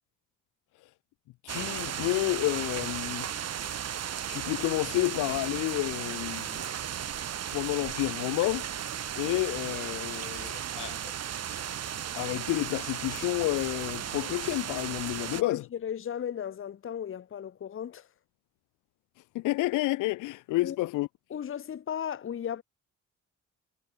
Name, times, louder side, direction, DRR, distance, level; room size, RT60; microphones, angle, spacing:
voice 1, 1.4-3.3 4.3-6.6 7.5-11.1 12.1-15.6 19.3-21.1, left 19 dB, 85° left, 0.6 m, -30 dB
sound 1, 1.5-15.4, right 9 dB, 55° right, 2.3 m, -35 dB
voice 2, 15.3-18.1 20.6-20.8 21.3-22.6, left 9 dB, 45° left, 1.1 m, -35 dB
cardioid pair, 90°, 30 cm